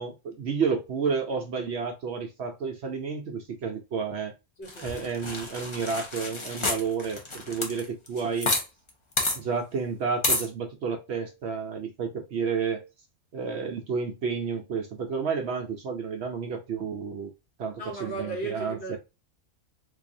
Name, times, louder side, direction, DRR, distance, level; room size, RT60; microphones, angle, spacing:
voice 1, 0.0-4.3 4.8-8.5 9.3-12.8 13.3-17.3 17.6-19.0, right 5 dB, 65° right, 0.8 m, -31 dB
voice 2, 4.6-5.1 17.8-19.0, right 2 dB, 55° left, 1.3 m, -36 dB
sound 1, 4.7-8.6 8.9-9.0 9.2-9.4 10.2-10.5, left 2 dB, 30° left, 0.6 m, -29 dB
3.9 x 2.7 x 2.6 m
omnidirectional pair, 1.4 m